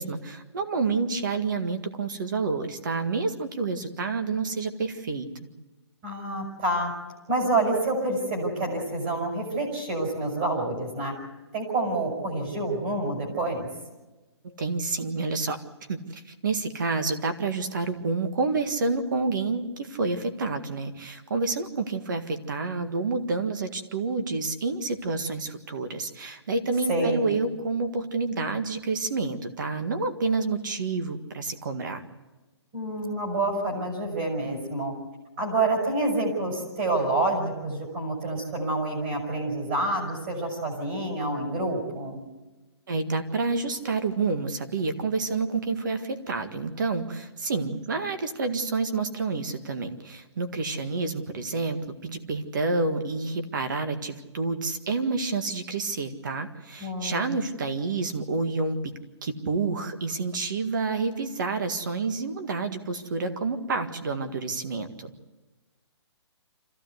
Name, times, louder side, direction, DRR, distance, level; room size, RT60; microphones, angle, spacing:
voice 1, 0.0-5.3 14.4-15.6 15.9-32.0 42.9-58.9 59.2-65.1, right 3 dB, 45° right, 8 dB, 1.8 m, -29 dB
voice 2, 6.0-6.9 7.3-11.2 11.5-13.7 26.9-27.3 32.7-34.9 35.4-42.2 56.8-57.4, right 2 dB, 25° right, 0 dB, 5.3 m, -28 dB
26.0 x 15.5 x 8.1 m, 1.2 s
hypercardioid pair, 175°, 15 cm